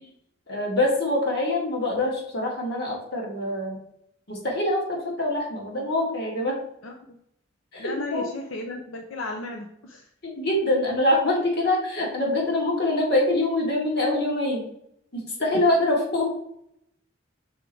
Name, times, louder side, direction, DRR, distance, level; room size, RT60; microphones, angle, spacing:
voice 1, 0.5-3.8 4.3-6.5 7.7-8.3 10.4-14.7 15.1-16.3, left 1 dB, 55° left, -2 dB, 1.9 m, -24 dB
voice 2, 7.8-10.0, left 2 dB, 85° left, 2 dB, 0.7 m, -34 dB
6.3 x 3.9 x 4.5 m, 0.74 s
head